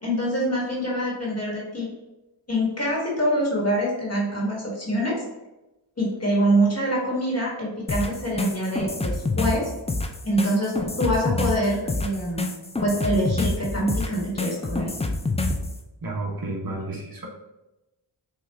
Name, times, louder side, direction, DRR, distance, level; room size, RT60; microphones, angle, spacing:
voice 1, 0.0-1.9 2.5-5.2 6.0-9.7 10.2-12.4 12.8-14.9, right 1 dB, 30° left, -4 dB, 1.3 m, -25 dB
sound 1, 7.9-15.7, left 2 dB, 15° left, 0.3 m, -27 dB
voice 2, 16.0-17.3, right 2 dB, 45° right, 0 dB, 1.0 m, -31 dB
5.8 x 2.3 x 3.4 m, 0.99 s
wide cardioid pair, 75°, 48 cm